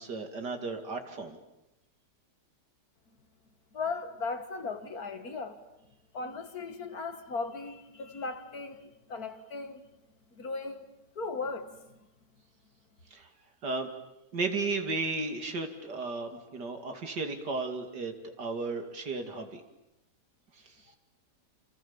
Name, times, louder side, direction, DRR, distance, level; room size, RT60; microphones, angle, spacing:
voice 1, 0.0-1.4 13.1-13.3 13.6-13.9 14.3-19.6, right 3 dB, 80° right, 3.2 m, -34 dB
voice 2, 3.7-5.6 6.1-9.8 10.4-10.9 11.2-11.7, left 4 dB, 60° left, 2.4 m, -37 dB
28.5 x 28.0 x 7.3 m
omnidirectional pair, 1.8 m